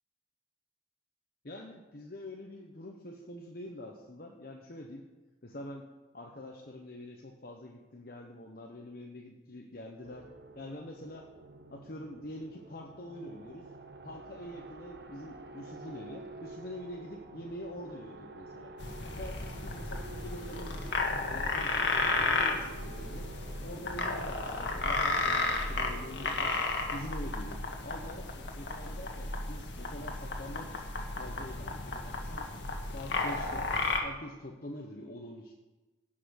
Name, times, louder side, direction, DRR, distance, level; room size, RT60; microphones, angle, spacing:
voice 1, 1.4-5.0 5.4-5.9 6.1-11.3 11.7-13.7 14.0-18.7 19.0-20.9 21.3-23.3 23.6-26.5 26.9-30.7 31.1-32.5 32.9-33.7 34.0-35.5, left 1 dB, 55° left, 1 dB, 1.0 m, -45 dB
sound 1, 10.0-26.6, right 2 dB, 65° right, 1.0 m, -49 dB
sound 2, 18.8-34.0, left 3 dB, 85° left, 1.6 m, -33 dB
16.5 x 5.9 x 6.5 m, 1.2 s
head